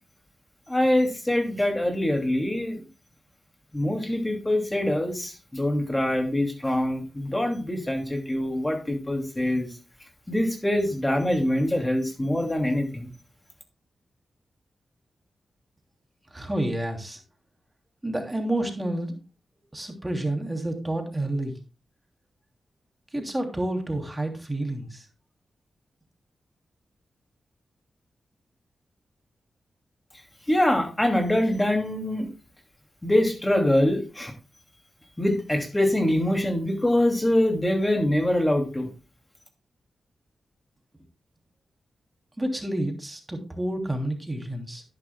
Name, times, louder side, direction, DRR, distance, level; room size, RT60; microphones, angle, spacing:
voice 1, 0.7-2.8 3.7-9.7 10.3-13.1 30.5-32.3 33.0-34.3 35.2-38.9, left 1 dB, 20° left, 4 dB, 2.6 m, -24 dB
voice 2, 16.3-17.2 18.0-19.2 19.7-21.5 23.1-25.0 42.4-44.8, right 1 dB, 20° right, 3 dB, 3.0 m, -29 dB
11.0 x 10.5 x 2.3 m, 0.32 s
cardioid pair, 50°, 0 cm